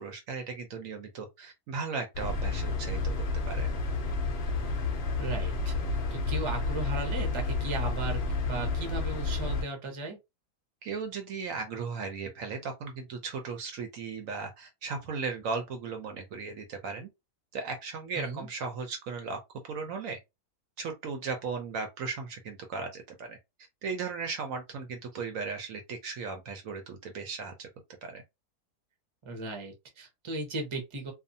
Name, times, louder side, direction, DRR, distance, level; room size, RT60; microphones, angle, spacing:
voice 1, 0.0-3.1 3.5-3.7 10.8-17.1 17.5-19.4 19.7-20.2 20.8-23.4 23.8-27.7 28.0-28.2, right 4 dB, 70° right, 1.0 m, -36 dB
sound 1, 2.1-9.6, left 3 dB, 65° left, 0.6 m, -30 dB
voice 2, 5.2-5.7 6.1-10.2 18.1-18.5 29.2-31.1, right 2 dB, 25° right, 0.7 m, -36 dB
2.5 x 2.3 x 2.6 m
omnidirectional pair, 1.6 m